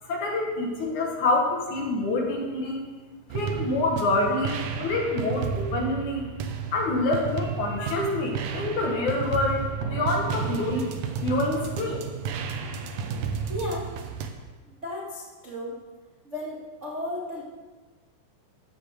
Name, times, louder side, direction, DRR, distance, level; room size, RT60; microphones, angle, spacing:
voice 1, 0.1-2.8 3.3-6.3 6.7-10.8 11.2-12.0, left 2 dB, 60° left, -1 dB, 2.6 m, -27 dB
sound 1, 3.3-14.3, right 6 dB, 75° right, 2.1 m, -32 dB
voice 2, 13.5-13.9 14.6-15.8 16.2-17.4, left 1 dB, 45° right, -6 dB, 0.9 m, -34 dB
14.0 x 6.3 x 6.5 m, 1.3 s
omnidirectional pair, 4.5 m